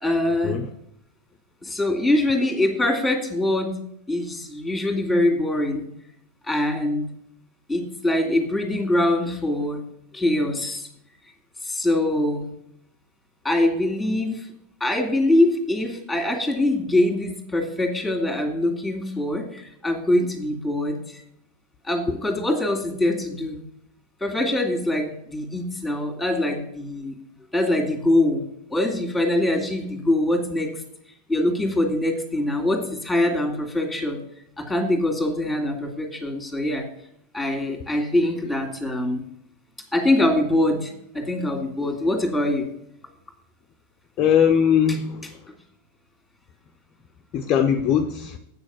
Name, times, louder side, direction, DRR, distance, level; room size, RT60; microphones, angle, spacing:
voice 1, 0.0-0.6 1.6-3.7 4.1-5.9 6.4-7.1 7.7-9.8 10.1-10.9 11.6-12.5 13.4-14.5 14.8-21.2 21.8-23.6 24.2-27.1 27.5-28.4 28.7-30.7 31.3-34.2 34.6-36.8 37.3-39.2 39.9-42.7, left 1 dB, 5° left, 3 dB, 2.2 m, -23 dB
voice 2, 44.2-45.4 47.3-48.4, left 8 dB, 35° left, 5 dB, 0.6 m, -20 dB
8.4 x 6.3 x 5.7 m, 0.75 s
figure-of-eight pair, 90°, 0 cm